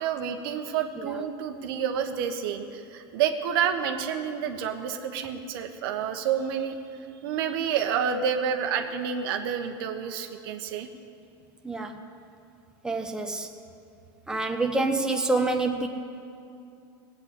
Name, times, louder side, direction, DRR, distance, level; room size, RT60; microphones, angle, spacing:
voice 1, 0.0-6.8 7.2-10.9, right 8 dB, 70° right, 6 dB, 1.2 m, -29 dB
voice 2, 11.6-12.0 12.8-13.5 14.3-15.9, right 3 dB, 5° right, 3 dB, 1.2 m, -27 dB
17.5 x 8.8 x 8.3 m, 2.5 s
supercardioid pair, 110°, 12 cm